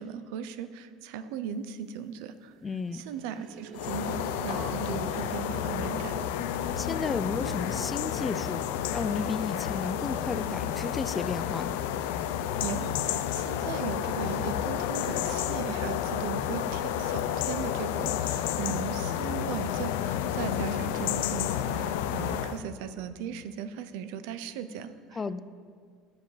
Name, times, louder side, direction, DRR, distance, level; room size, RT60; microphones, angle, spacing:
voice 1, 0.0-2.5 2.9-6.3 12.6-25.2, right 7 dB, 80° right, 12 dB, 0.5 m, -37 dB
voice 2, 2.6-3.0 6.8-11.8 25.1-25.4, left 4 dB, 25° left, 14 dB, 0.4 m, -33 dB
sound 1, 2.7-19.1 19.4-19.7 20.1-20.3, right 5 dB, 35° right, 0.8 m, -51 dB
sound 2, 3.7-22.6, left 10 dB, 85° left, 0.4 m, -31 dB
sound 3, 4.5-5.8 6.4-8.7 9.1-11.0, left 3 dB, 55° left, 1.7 m, -44 dB
10.0 x 7.2 x 4.9 m, 2.1 s
supercardioid pair, 115°, 0 cm